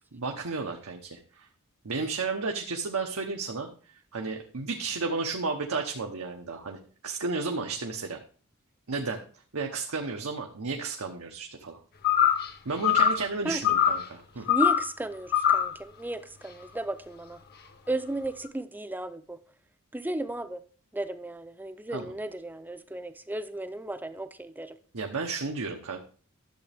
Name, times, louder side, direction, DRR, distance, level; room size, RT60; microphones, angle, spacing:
voice 1, 0.1-1.5 1.8-3.7 4.1-8.2 8.9-9.2 9.5-11.8 12.6-14.5 21.9-22.1 24.9-26.0, right 4 dB, 80° right, 2 dB, 0.9 m, -33 dB
sound 1, 12.0-12.5 12.8-13.3 13.6-14.0 14.5-14.9 15.3-15.8, left 9 dB, 50° left, 1.0 m, -22 dB
voice 2, 14.5-17.4 17.9-19.4 19.9-20.6 20.9-24.7, right 1 dB, 10° right, 11 dB, 0.5 m, -34 dB
11.5 x 7.2 x 3.5 m, 0.42 s
head